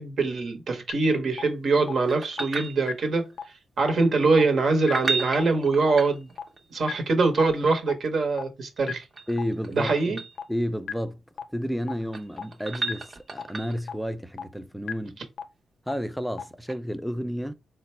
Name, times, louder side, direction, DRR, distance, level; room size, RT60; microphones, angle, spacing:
voice 1, 0.0-3.3 3.8-6.3 6.7-9.0 9.7-10.2, right 3 dB, 65° right, 1.0 m, -23 dB
sound 1, 0.9-1.0 1.4-1.5 1.9-2.0 2.4-2.5 2.9-3.0 3.4-3.5 3.9-4.0 4.4-4.5 4.9-5.0 5.4-5.5 5.9-6.0 6.4-6.5 6.9-7.0 7.4-7.5 7.9-8.0 8.4-8.5 8.9-9.0 9.4-9.5 9.9-10.0 10.4-10.5 10.9-11.0 11.4-11.5 11.9-12.0 12.4-12.5 12.9-13.0 13.4-13.5 13.9-14.0 14.4-14.5 14.9-15.0 15.4-15.5 15.9-16.0 16.4-16.5, left 7 dB, 65° left, 0.4 m, -32 dB
sound 2, 2.1-3.3 4.8-6.6 8.8-10.4 11.8-13.9 16.7-16.8, right 4 dB, 45° right, 0.7 m, -34 dB
voice 2, 9.3-9.9 10.5-11.2 11.5-15.2 15.9-17.5, equal, ahead, 0.4 m, -31 dB
4.0 x 2.2 x 4.2 m
cardioid pair, 95°, 0 cm